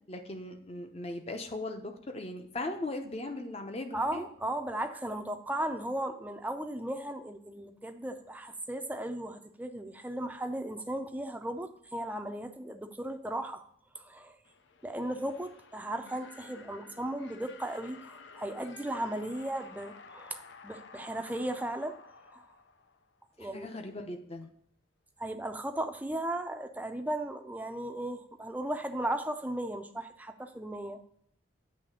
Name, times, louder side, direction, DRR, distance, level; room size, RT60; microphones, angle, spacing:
voice 1, 0.1-4.3 23.4-24.5, left 2 dB, 35° left, 5 dB, 0.8 m, -38 dB
voice 2, 3.9-13.6 13.9-14.4 14.8-22.0 22.3-22.4 23.4-23.7 25.2-31.0, right 1 dB, 10° right, 7 dB, 0.5 m, -36 dB
sound 1, 14.4-23.3, left 4 dB, 75° left, 0.6 m, -52 dB
8.5 x 3.3 x 6.3 m, 0.70 s
head